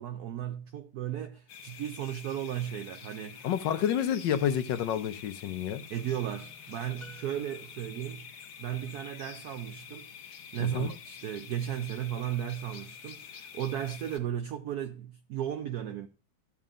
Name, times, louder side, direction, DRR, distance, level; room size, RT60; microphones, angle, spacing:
voice 1, 0.0-3.5 5.9-8.3 8.6-10.1 10.5-16.1, right 10 dB, 75° right, 0.9 m, -35 dB
sound 1, 1.5-14.2, left 7 dB, 55° left, 1.1 m, -47 dB
voice 2, 3.4-5.8 10.6-10.9, left 9 dB, 70° left, 1.2 m, -29 dB
sound 2, 7.0-8.1, left 2 dB, ahead, 1.0 m, -54 dB
13.0 x 7.1 x 2.4 m
omnidirectional pair, 2.2 m